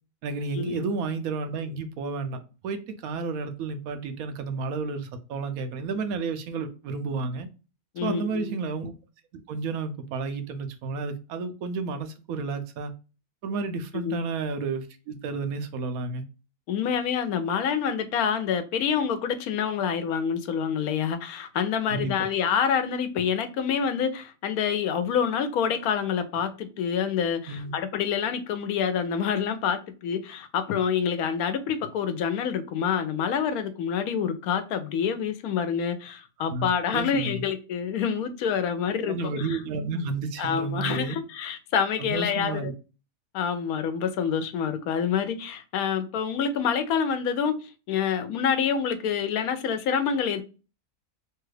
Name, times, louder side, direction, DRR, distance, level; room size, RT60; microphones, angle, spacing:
voice 1, 0.2-2.4 2.6-7.5 8.0-8.9 9.5-12.9 13.4-16.2 21.9-22.2 27.5-27.7 36.5-37.5 39.0-41.2 42.0-42.7, right 4 dB, 75° right, 1.0 m, -31 dB
voice 2, 7.9-8.5 14.0-14.2 16.7-39.6 40.4-42.7 43.3-50.4, left 7 dB, 80° left, 1.1 m, -27 dB
3.2 x 2.3 x 3.1 m
omnidirectional pair, 1.5 m